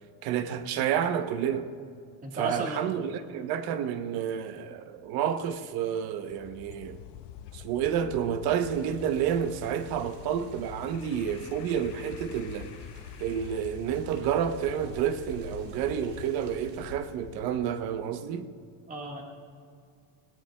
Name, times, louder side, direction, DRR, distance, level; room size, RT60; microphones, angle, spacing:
voice 1, 0.2-1.7 2.3-7.0 7.5-12.7 13.2-18.5, right 9 dB, 50° right, 0.8 m, -30 dB
voice 2, 2.2-2.8 18.9-19.2, right 2 dB, 15° right, 1.5 m, -34 dB
sound 1, 6.2-18.2, left 10 dB, 60° left, 0.6 m, -46 dB
sound 2, 8.6-16.9, right 3 dB, 65° right, 2.8 m, -51 dB
20.0 x 17.5 x 2.2 m
cardioid pair, 165°, 47 cm